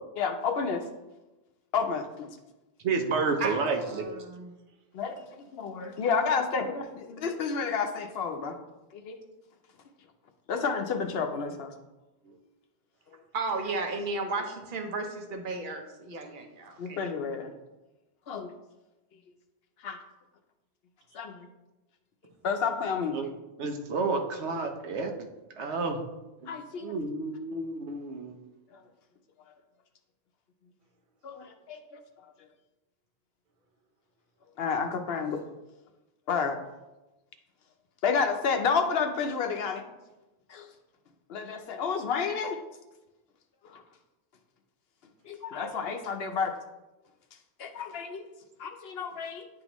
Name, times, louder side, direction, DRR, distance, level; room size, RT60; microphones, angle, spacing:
voice 1, 0.2-0.8 1.7-2.3 4.9-8.6 8.9-9.1 10.5-11.7 16.8-17.5 18.3-18.5 19.8-20.0 21.1-21.5 22.4-23.2 26.5-27.0 31.2-32.0 34.6-35.4 36.3-36.6 38.0-39.8 40.5-40.7 41.3-42.6 43.6-43.8 45.2-46.5 47.6-48.2 48.6-49.5, left 5 dB, 65° left, 7 dB, 0.8 m, -30 dB
voice 2, 2.8-4.0 23.1-23.3 23.6-25.1 25.6-26.0 26.4-26.5 26.8-28.4, right 4 dB, 80° right, 5 dB, 1.0 m, -30 dB
voice 3, 3.4-4.6 13.3-17.0, right 3 dB, 50° right, 4 dB, 0.9 m, -34 dB
9.6 x 3.7 x 3.0 m, 1.0 s
omnidirectional pair, 1.1 m